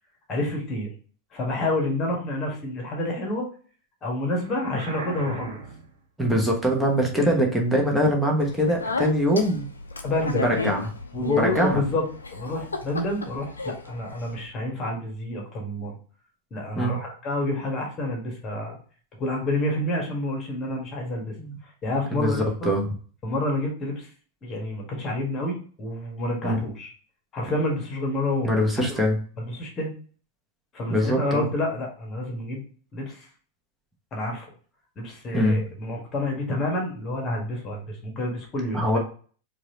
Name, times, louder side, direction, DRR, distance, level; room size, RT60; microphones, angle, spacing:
voice 1, 0.3-0.9 1.3-3.4 4.0-5.6 7.2-7.4 10.0-10.5 11.1-12.0 12.3-16.0 16.5-18.8 19.2-21.3 21.6-22.7 23.2-24.1 24.4-26.9 27.3-29.0 29.4-29.9 30.7-32.6 32.9-33.3 34.1-34.5 35.0-39.0, left 1 dB, 25° left, 1 dB, 1.4 m, -28 dB
sound 1, 4.4-6.0, right 4 dB, 60° right, 0.7 m, -38 dB
voice 2, 6.2-9.7 10.4-10.9 11.3-11.8 16.8-16.9 21.4-21.6 22.1-22.9 26.4-26.6 28.4-29.2 30.9-31.5 35.3-35.6 38.7-39.0, equal, 5° right, -1 dB, 1.1 m, -23 dB
Speech, 8.4-14.5, left 3 dB, 75° left, 0.5 m, -33 dB
4.6 x 2.6 x 2.8 m, 0.43 s
figure-of-eight pair, 90°, 0 cm